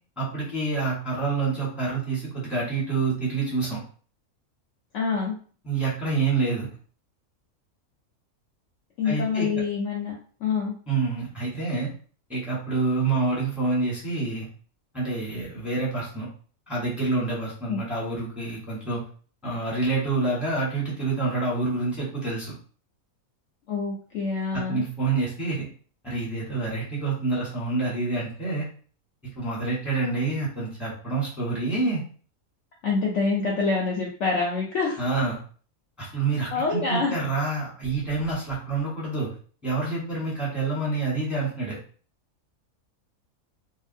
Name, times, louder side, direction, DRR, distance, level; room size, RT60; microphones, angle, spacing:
voice 1, 0.2-3.8 5.6-6.7 9.0-9.5 10.9-11.9 12.3-14.5 14.9-16.3 16.7-19.0 19.4-22.5 24.5-25.7 26.0-28.7 29.3-32.0 35.0-35.4 36.0-39.3 39.6-41.8, right 3 dB, ahead, -7 dB, 1.1 m, -27 dB
voice 2, 4.9-5.3 9.0-10.1 10.4-10.7 17.7-17.8 23.7-24.8 32.8-35.0 36.5-37.1, left 4 dB, 65° left, -1 dB, 0.8 m, -26 dB
2.8 x 2.3 x 2.5 m, 0.42 s
omnidirectional pair, 1.5 m